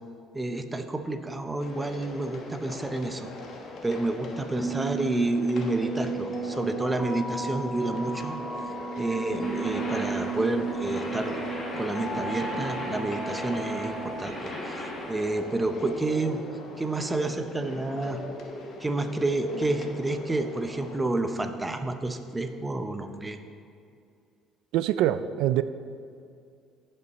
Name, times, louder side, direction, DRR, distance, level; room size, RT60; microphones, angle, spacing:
voice 1, 0.3-3.3 3.8-8.4 9.0-11.4 11.8-16.4 16.8-18.2 18.8-23.4, right 2 dB, 15° right, 7 dB, 0.6 m, -29 dB
sound 1, 1.6-21.0, left 2 dB, 50° left, 1.2 m, -41 dB
sound 2, 4.6-14.2, right 5 dB, 5° left, 1.2 m, -34 dB
sound 3, 9.4-15.3, left 1 dB, 30° left, 1.7 m, -37 dB
voice 2, 24.7-25.6, right 12 dB, 80° right, 13 dB, 0.3 m, -24 dB
15.0 x 5.5 x 4.1 m, 2.4 s
cardioid pair, 130°, 0 cm